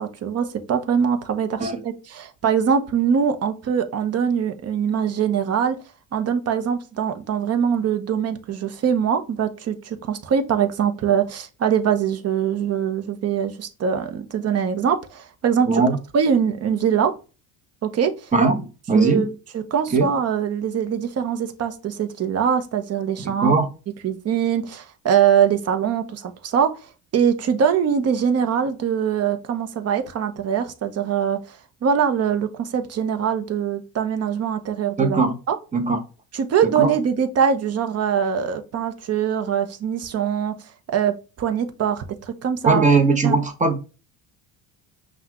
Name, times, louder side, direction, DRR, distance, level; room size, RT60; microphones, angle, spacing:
voice 1, 0.0-5.8 6.1-15.7 16.1-17.1 17.8-18.3 18.9-19.3 19.5-23.5 24.0-35.2 35.5-35.6 36.3-40.5 40.9-42.8 43.2-43.4, right 7 dB, 40° right, 0.8 m, -23 dB
voice 2, 15.7-16.0 18.3-19.3 19.9-20.1 23.2-23.7 35.0-35.4 35.7-36.0 36.7-36.9 42.6-43.8, right 4 dB, 20° right, 1.0 m, -19 dB
5.7 x 2.4 x 2.9 m
supercardioid pair, 95°, 39 cm